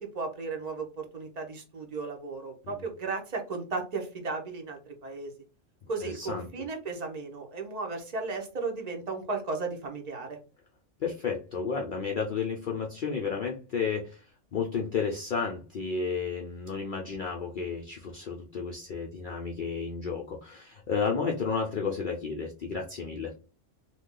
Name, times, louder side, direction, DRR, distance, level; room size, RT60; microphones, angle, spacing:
voice 1, 0.0-5.3 5.9-10.4, right 3 dB, 40° right, 2 dB, 0.7 m, -35 dB
voice 2, 6.0-6.5 11.0-14.3 14.5-23.3, left 5 dB, 60° left, 0 dB, 0.5 m, -32 dB
2.7 x 2.3 x 3.6 m, 0.34 s
omnidirectional pair, 1.3 m